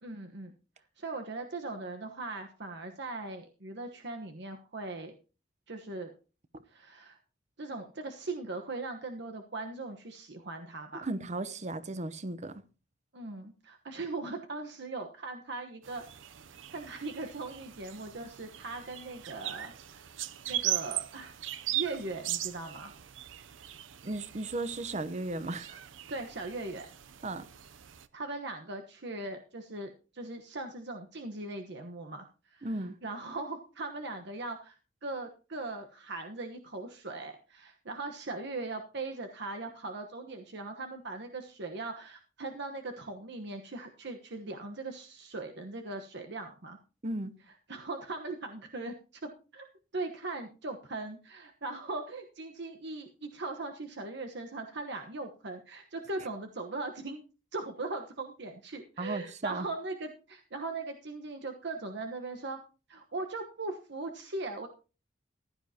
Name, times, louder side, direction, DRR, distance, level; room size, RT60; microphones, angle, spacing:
voice 1, 0.0-0.5 1.0-5.1 5.7-6.1 6.7-7.2 7.6-11.1 13.1-16.0 16.7-20.1 20.5-21.4 21.7-22.9 26.1-26.9 28.1-34.8 35.0-46.8 47.7-49.0 49.5-49.7 49.9-57.2 57.5-62.6 62.9-64.7, right 3 dB, 65° right, 1.2 m, -39 dB
voice 2, 11.0-12.5 24.0-25.8 27.2-27.5 32.6-32.9 47.0-47.4 59.0-59.7, right 2 dB, 40° right, 0.9 m, -35 dB
sound 1, 15.8-28.1, right 13 dB, 80° right, 0.7 m, -39 dB
15.5 x 11.5 x 2.9 m
head